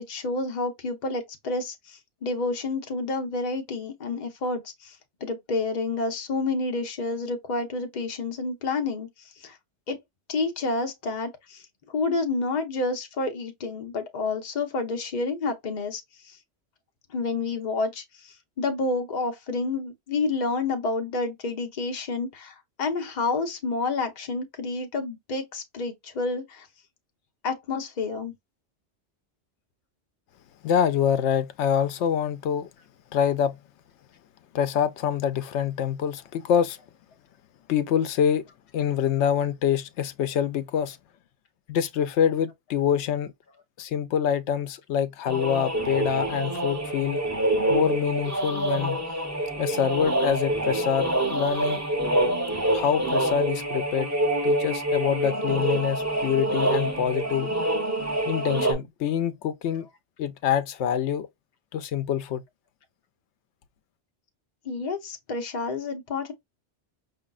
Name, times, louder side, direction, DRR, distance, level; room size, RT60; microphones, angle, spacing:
voice 1, 0.0-9.1 9.4-9.6 9.9-10.0 10.3-11.6 11.9-16.4 17.1-26.7 27.4-28.3 64.6-66.3, left 3 dB, 40° left, 0.9 m, -29 dB
voice 2, 30.6-32.7 33.1-33.6 34.5-36.8 37.7-38.4 38.7-41.0 41.7-43.3 43.8-47.2 47.7-49.0 49.6-51.8 52.7-54.1 54.4-57.5 58.3-59.9 60.2-61.3 61.7-62.4, left 8 dB, 75° left, 0.9 m, -25 dB
sound 1, 45.2-58.7, right 1 dB, 15° right, 1.0 m, -26 dB
5.0 x 2.6 x 2.4 m
omnidirectional pair, 1.2 m